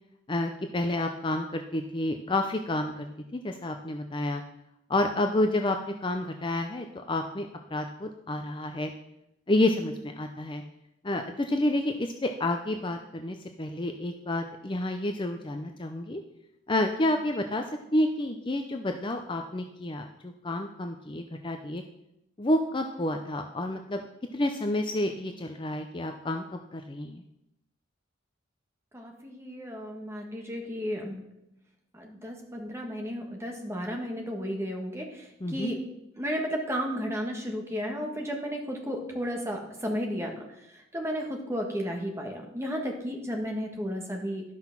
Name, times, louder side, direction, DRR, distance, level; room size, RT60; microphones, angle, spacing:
voice 1, 0.3-3.1 3.3-4.4 4.9-8.9 9.5-10.6 11.0-16.2 16.7-17.6 17.9-21.8 22.4-24.0 24.3-27.2 35.4-35.7, left 1 dB, 25° left, 5 dB, 0.5 m, -29 dB
voice 2, 28.9-31.2 31.9-35.8 36.2-40.5 40.7-44.4, equal, 15° right, 1 dB, 1.5 m, -33 dB
12.0 x 5.8 x 5.9 m, 0.84 s
head